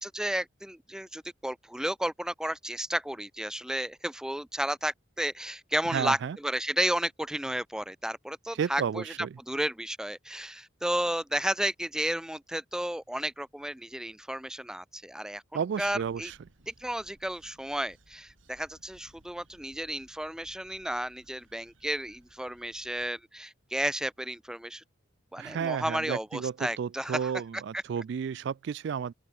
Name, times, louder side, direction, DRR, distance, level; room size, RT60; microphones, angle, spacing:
voice 1, 0.0-9.0 9.5-15.4 15.8-16.3 16.7-24.8 25.3-27.3 27.7-27.8, right 1 dB, 5° right, 0.5 m, -32 dB
voice 2, 5.9-6.4 8.5-9.4 15.5-16.4 25.4-29.1, right 7 dB, 60° right, 0.3 m, -32 dB
sound 1, 15.8-23.1, right 1 dB, 85° right, 3.9 m, -62 dB
open air
head